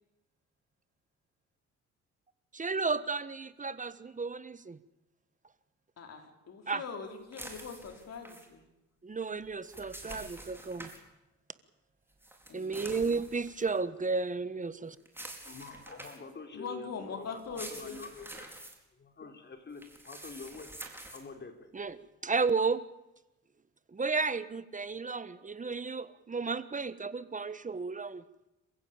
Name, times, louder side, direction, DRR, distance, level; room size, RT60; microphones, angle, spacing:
voice 1, 2.5-4.8 6.7-6.8 9.0-10.9 12.5-15.0 21.7-22.0 22.2-22.8 23.9-28.5, right 4 dB, 25° right, 14 dB, 1.4 m, -33 dB
voice 2, 6.0-8.6 12.5-12.9 16.5-18.0, left 5 dB, 55° left, 5 dB, 4.7 m, -42 dB
sound 1, 7.3-8.5 9.4-11.0 12.2-13.8 15.1-16.3 17.4-18.8 19.8-21.2, right 1 dB, 5° right, 4.8 m, -47 dB
voice 3, 15.4-18.5 18.9-20.7 21.1-21.7, left 4 dB, 35° left, 6 dB, 4.0 m, -46 dB
28.0 x 15.5 x 9.0 m, 0.93 s
cardioid pair, 90°, 30 cm